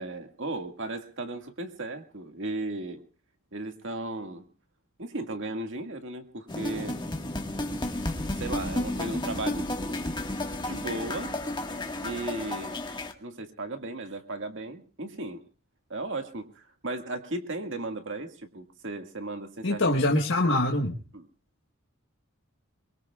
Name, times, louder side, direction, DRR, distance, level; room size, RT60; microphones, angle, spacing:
voice 1, 0.0-3.0 3.5-4.4 5.0-7.0 8.3-9.6 9.9-10.0 10.7-11.3 12.0-12.8 13.2-15.4 15.9-19.8 21.1-21.3, right 2 dB, 60° right, 5 dB, 1.9 m, -35 dB
sound 1, 6.5-13.1, left 1 dB, 20° left, 1.6 m, -32 dB
voice 2, 19.6-21.0, left 1 dB, 60° left, 1 dB, 1.5 m, -24 dB
23.5 x 23.0 x 2.4 m, 0.36 s
head